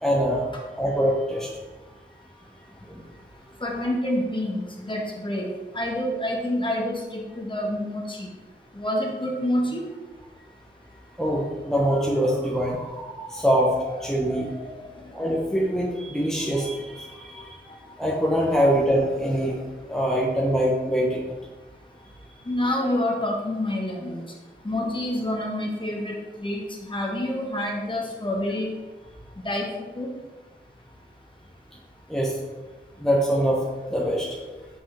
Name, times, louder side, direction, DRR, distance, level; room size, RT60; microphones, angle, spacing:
voice 1, 0.0-0.5 0.8-1.5 2.9-3.0 11.2-14.9 15.1-19.5 19.9-21.2 32.1-32.3 33.0-33.6 33.9-34.3, equal, ahead, -4 dB, 1.1 m, -24 dB
voice 2, 3.6-8.3 8.7-9.8 22.5-24.2 24.6-28.7 29.4-29.7 29.9-30.1, left 1 dB, 25° left, -1 dB, 1.3 m, -27 dB
5.9 x 5.1 x 3.4 m, 1.2 s
wide cardioid pair, 55°, 20 cm